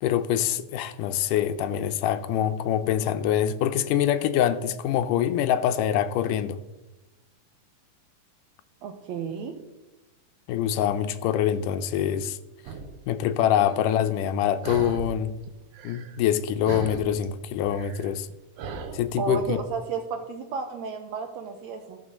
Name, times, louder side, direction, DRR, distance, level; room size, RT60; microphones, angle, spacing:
voice 1, 0.0-6.6 10.5-12.4 13.1-15.4 15.8-18.3 18.9-19.6, left 10 dB, 80° left, 2.1 m, -25 dB
voice 2, 8.8-9.6 19.2-22.0, right 5 dB, 70° right, 1.8 m, -32 dB
sound 1, 12.6-13.0 13.5-13.8 14.6-15.3 15.5-16.4 16.6-19.4, right 4 dB, 90° right, 1.2 m, -37 dB
13.5 x 5.3 x 6.3 m
omnidirectional pair, 3.8 m